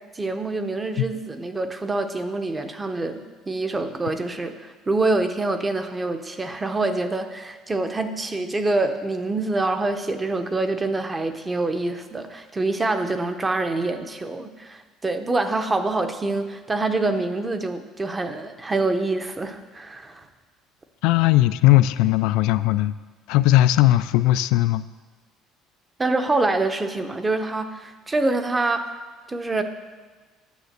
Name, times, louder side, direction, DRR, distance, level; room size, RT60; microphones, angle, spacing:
voice 1, 0.1-20.3 26.0-28.9 29.3-29.6, right 2 dB, 15° right, 8 dB, 0.7 m, -26 dB
voice 2, 21.0-22.9 23.3-24.8, left 15 dB, 80° left, 13 dB, 0.3 m, -18 dB
9.3 x 6.9 x 6.6 m, 1.3 s
cardioid pair, 155°, 0 cm